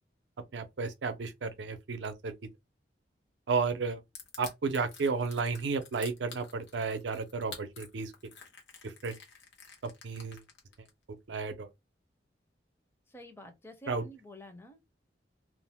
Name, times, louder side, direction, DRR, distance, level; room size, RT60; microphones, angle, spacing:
voice 1, 0.5-2.3 3.5-4.0 4.4-8.3 8.8-9.2 9.8-10.4 11.3-11.7 13.9-14.1, right 4 dB, 85° right, 0.5 m, -33 dB
Crushing, 4.1-10.9, left 5 dB, 85° left, 0.9 m, -49 dB
voice 2, 13.1-14.9, equal, 15° left, 0.5 m, -49 dB
2.4 x 2.0 x 3.4 m
head